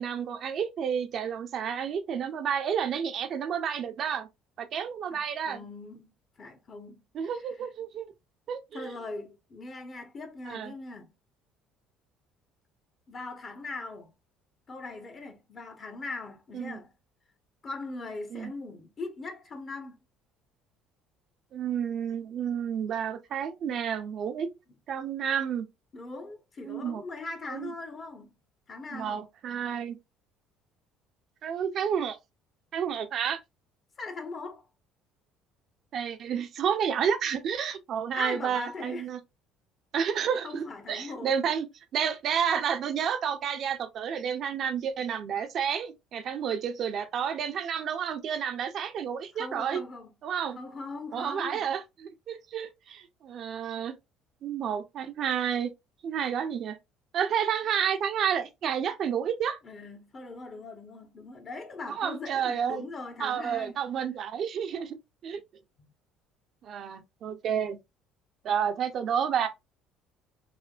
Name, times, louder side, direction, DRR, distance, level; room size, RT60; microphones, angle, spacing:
voice 1, 0.0-4.3 4.6-5.6 7.1-8.1 8.5-8.9 10.5-10.7 16.5-16.8 18.3-18.5 21.5-24.5 24.9-25.7 26.6-27.0 27.5-27.7 28.9-30.0 31.4-32.2 32.7-33.4 35.9-39.2 39.9-41.7 41.9-49.8 50.2-50.6 51.1-54.0 54.4-55.7 56.0-56.8 57.1-59.6 61.9-62.8 63.2-65.0 65.2-65.4 66.6-67.8 68.4-69.5, right 8 dB, 50° right, 0.5 m, -30 dB
voice 2, 5.1-7.3 8.7-11.1 13.1-14.1 14.7-16.9 17.6-20.0 25.9-28.4 28.7-29.2 34.0-34.6 38.1-39.1 40.1-40.2 40.4-41.3 49.3-50.1 50.5-51.7 59.6-63.7 65.8-65.9, left 3 dB, 40° left, 0.9 m, -40 dB
4.9 x 2.1 x 2.3 m
figure-of-eight pair, 55°, 0 cm